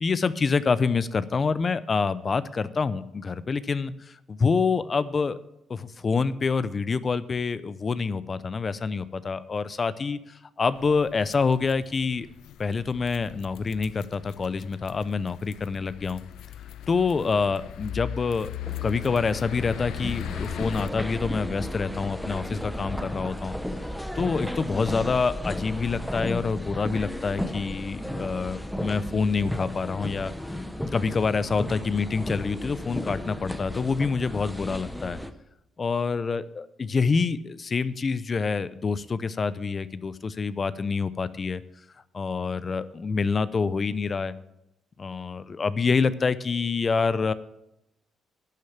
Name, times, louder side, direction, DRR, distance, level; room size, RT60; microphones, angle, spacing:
voice 1, 0.0-5.4 5.7-12.3 12.6-16.2 16.9-18.5 18.8-23.6 24.1-30.3 30.9-35.2 35.8-41.6 42.1-44.3 45.0-47.3, left 5 dB, 35° left, 15 dB, 0.7 m, -27 dB
sound 1, 10.7-20.9, left 11 dB, 80° left, 0.4 m, -39 dB
sound 2, 18.6-35.3, left 1 dB, 5° left, 1.0 m, -34 dB
11.5 x 6.5 x 8.7 m, 0.84 s
cardioid pair, 90°, 0 cm